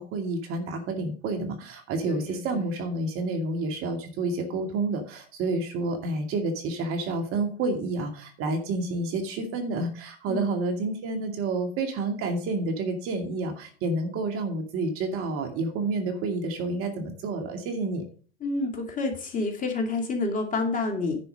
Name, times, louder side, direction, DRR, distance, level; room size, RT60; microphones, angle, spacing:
voice 1, 0.0-18.0, right 3 dB, 40° right, 4 dB, 2.4 m, -29 dB
voice 2, 2.1-2.6 10.3-10.5 18.4-21.2, left 3 dB, 25° left, 3 dB, 2.5 m, -29 dB
10.5 x 5.5 x 5.3 m, 0.41 s
hypercardioid pair, 100°, 32 cm